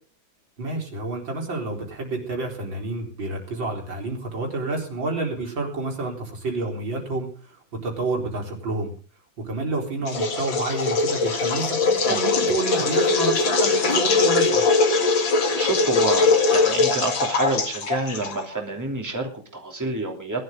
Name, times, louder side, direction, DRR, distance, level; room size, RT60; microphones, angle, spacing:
voice 1, 0.6-8.9 9.4-14.6, right 3 dB, 80° right, 1 dB, 4.8 m, -29 dB
sound 1, 10.1-18.6, left 4 dB, 80° left, 2.8 m, -21 dB
voice 2, 15.6-20.4, right 2 dB, 10° right, 1 dB, 2.9 m, -28 dB
21.0 x 12.0 x 3.8 m, 0.37 s
omnidirectional pair, 2.1 m